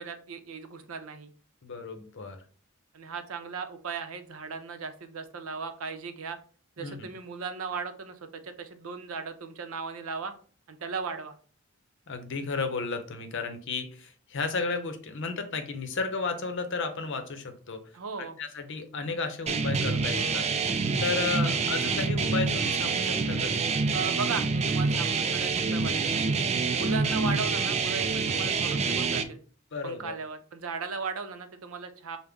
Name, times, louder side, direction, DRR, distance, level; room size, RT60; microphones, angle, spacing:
voice 1, 0.0-1.3 2.9-6.4 6.8-10.3 10.7-11.4 17.9-18.4 21.4-21.6 23.9-26.4 26.7-29.4 29.8-32.2, right 5 dB, 75° right, 8 dB, 0.6 m, -37 dB
voice 2, 1.6-2.4 6.8-7.1 12.1-17.8 18.2-20.5 21.0-23.5 26.9-27.0 29.7-30.2, left 4 dB, 60° left, 8 dB, 0.7 m, -33 dB
sound 1, 19.5-29.2, right 4 dB, 30° right, 0.3 m, -27 dB
5.2 x 2.1 x 3.4 m, 0.42 s
head